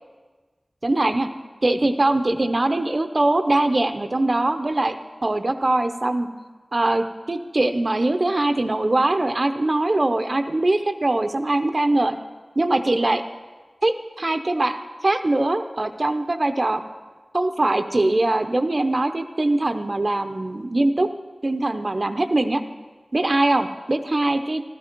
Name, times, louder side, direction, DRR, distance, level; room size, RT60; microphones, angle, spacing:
voice 1, 0.8-1.3 1.6-4.9 5.2-6.3 6.7-12.2 12.6-13.2 13.8-16.8 17.3-21.1 21.4-22.6 23.1-24.6, right 2 dB, 50° right, 8 dB, 0.7 m, -22 dB
13.5 x 13.0 x 4.5 m, 1.3 s
wide cardioid pair, 45°, 0 cm